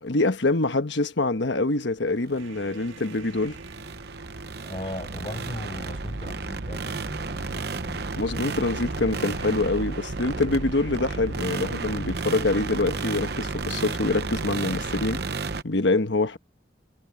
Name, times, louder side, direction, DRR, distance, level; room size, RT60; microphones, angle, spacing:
voice 1, 0.0-3.6 8.2-15.2 15.6-16.4, left 2 dB, 70° left, 1.3 m, -25 dB
sound 1, 2.3-15.6, right 3 dB, 55° right, 0.9 m, -32 dB
sound 2, 2.4-12.3, right 2 dB, 90° right, 2.0 m, -45 dB
voice 2, 4.6-8.1, left 1 dB, 30° left, 5.8 m, -37 dB
head